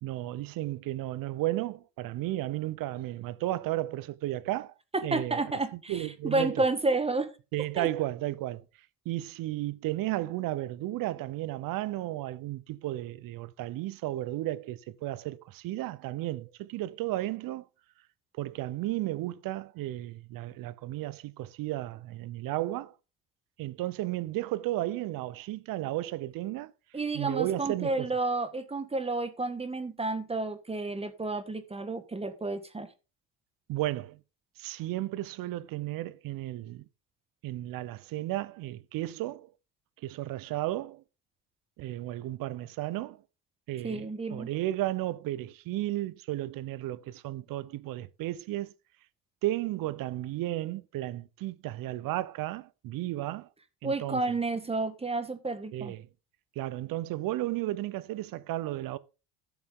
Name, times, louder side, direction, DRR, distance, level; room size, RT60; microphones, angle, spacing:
voice 1, 0.0-4.7 5.0-5.4 5.7-6.6 7.5-8.6 9.0-17.7 18.4-22.9 23.6-26.7 27.1-28.1 33.7-34.2 34.6-36.8 37.4-39.5 40.0-41.0 41.8-43.2 43.7-48.7 49.4-53.5 53.8-54.2 55.7-56.1 56.6-59.0, right 16 dB, 60° right, 0.9 m, -33 dB
voice 2, 4.9-7.3 7.7-7.9 26.9-32.9 43.8-44.5 53.8-55.9, right 3 dB, 15° right, 1.4 m, -31 dB
12.5 x 7.1 x 3.8 m
supercardioid pair, 105°, 38 cm